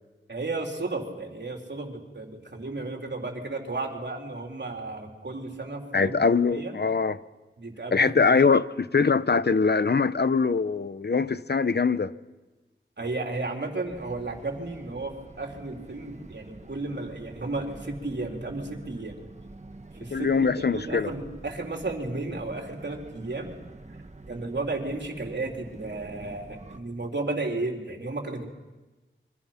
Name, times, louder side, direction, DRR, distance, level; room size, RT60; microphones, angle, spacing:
voice 1, 0.3-6.2 6.5-6.8 7.6-8.3 13.0-19.2 19.9-23.5 24.3-28.4, right 2 dB, 55° right, 4.0 m, -33 dB
voice 2, 5.9-7.2 7.9-12.1 20.1-21.1, left 5 dB, 55° left, 0.9 m, -23 dB
sound 1, 13.8-26.8, right 2 dB, 35° right, 1.7 m, -47 dB
28.0 x 25.0 x 5.9 m
wide cardioid pair, 65°, 21 cm